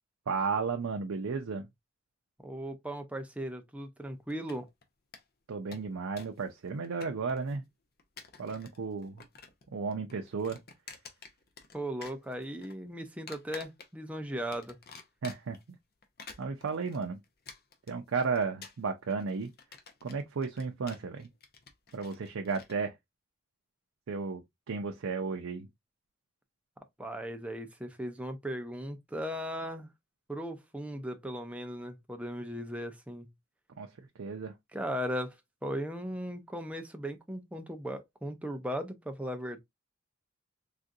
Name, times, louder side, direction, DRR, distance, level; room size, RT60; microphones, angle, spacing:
voice 1, 0.3-1.7 5.5-7.7 8.4-9.3 9.7-10.6 15.2-15.8 16.4-17.2 17.9-19.5 20.0-21.3 21.9-23.0 24.1-25.7 33.8-34.6, right 5 dB, 85° right, 0.5 m, -34 dB
voice 2, 2.4-4.7 11.7-14.8 27.0-29.9 30.3-33.3 34.7-35.4 35.6-39.6, equal, 5° right, 0.5 m, -37 dB
sound 1, 4.3-4.8 5.1-5.2 5.5-6.4 6.7-7.5 8.0-8.8 9.0-9.7 9.9-11.8 12.0-12.7 13.3-14.1 14.5-15.6 16.0-22.7, left 5 dB, 50° left, 0.6 m, -50 dB
3.7 x 2.5 x 2.6 m
head